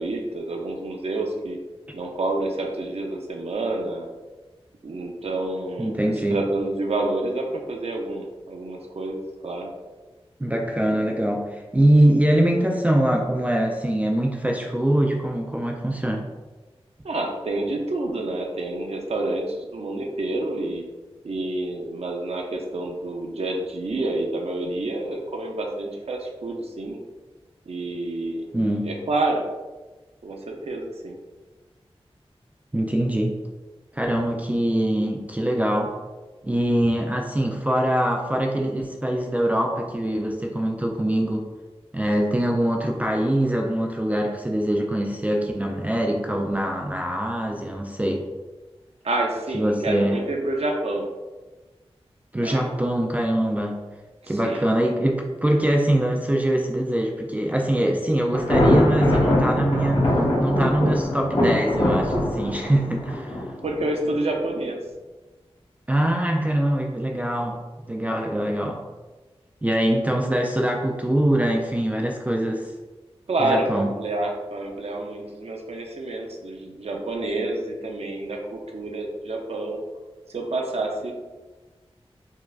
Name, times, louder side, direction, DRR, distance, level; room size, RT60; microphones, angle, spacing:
voice 1, 0.0-1.6 1.9-4.1 4.8-9.7 17.0-20.8 21.2-27.0 27.7-28.5 28.8-29.4 30.2-31.2 49.0-51.1 52.4-52.7 54.2-54.7 63.6-64.8 73.3-79.8 80.3-81.1, right 2 dB, 75° right, 1 dB, 0.5 m, -28 dB
voice 2, 5.8-6.4 10.4-16.2 28.5-28.9 32.7-33.4 33.9-36.0 36.4-41.4 41.9-48.3 49.5-50.2 52.3-53.8 54.3-63.4 65.9-68.8 69.6-72.7 73.4-73.9, right 1 dB, 15° right, 0 dB, 0.3 m, -23 dB
Thunder, 58.3-64.2, left 1 dB, 80° left, 1.1 m, -22 dB
4.6 x 2.1 x 2.3 m, 1.2 s
wide cardioid pair, 70°, 10 cm